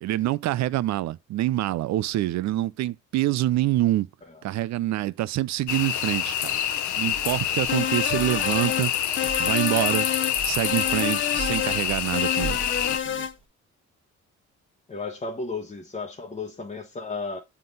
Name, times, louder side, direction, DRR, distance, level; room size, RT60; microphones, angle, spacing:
voice 1, 0.0-4.1 4.4-6.6 7.0-8.9 9.4-10.1 10.4-12.6 12.9-13.3, right 14 dB, 65° right, 0.4 m, -26 dB
sound 1, 5.7-13.0, left 10 dB, 75° left, 0.8 m, -27 dB
sound 2, 6.6-13.4, right 4 dB, 20° right, 1.4 m, -41 dB
sound 3, 7.7-8.9 9.2-10.4 10.6-11.8 12.1-13.3, left 8 dB, 40° left, 0.7 m, -29 dB
voice 2, 14.9-17.4, left 3 dB, 25° left, 1.0 m, -33 dB
7.7 x 3.7 x 3.8 m
cardioid pair, 90°, 30 cm